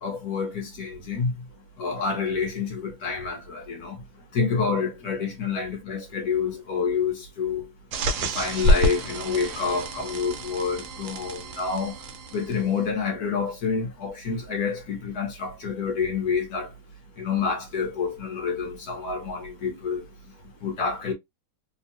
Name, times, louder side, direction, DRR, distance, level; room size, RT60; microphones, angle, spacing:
voice 1, 0.0-1.3 1.8-3.9 4.3-7.6 8.3-12.0 12.3-16.7 17.2-20.0 20.6-21.1, left 5 dB, 60° left, 1.1 m, -28 dB
sound 1, 7.9-12.8, equal, 75° right, 1.4 m, -27 dB
3.5 x 2.2 x 2.8 m
omnidirectional pair, 2.3 m